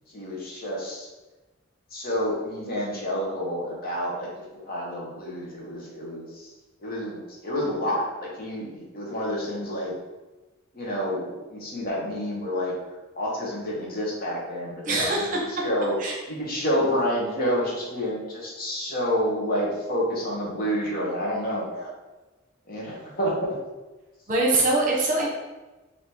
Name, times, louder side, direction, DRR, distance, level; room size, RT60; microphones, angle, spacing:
voice 1, 0.1-1.1 1.9-4.3 4.6-6.5 6.8-9.9 10.7-12.7 13.1-15.1 15.6-16.0 16.3-21.9 22.7-23.5, equal, 50° left, -3 dB, 1.0 m, -29 dB
voice 2, 14.9-15.6 16.0-16.2 24.3-25.3, right 2 dB, 40° right, -2 dB, 0.9 m, -23 dB
3.4 x 2.8 x 4.4 m, 1.1 s
head